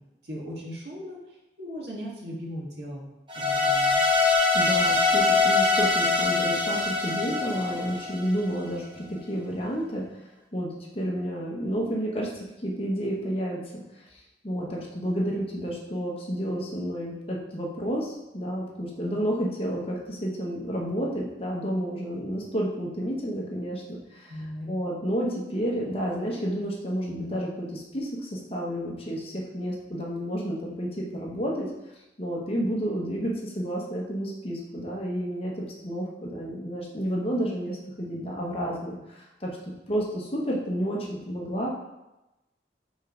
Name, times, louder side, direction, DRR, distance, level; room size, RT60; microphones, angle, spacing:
voice 1, 0.2-1.2 1.6-3.1 3.3-4.0 24.3-24.7, equal, 75° right, -3 dB, 1.6 m, -37 dB
sound 1, 3.3-8.5, left 3 dB, 25° right, 1.1 m, -23 dB
voice 2, 4.5-10.0 10.5-12.3 12.6-13.8 14.1-24.3 24.7-31.7 32.2-41.7, equal, 35° left, -3 dB, 1.1 m, -30 dB
5.3 x 3.8 x 5.0 m, 0.96 s
head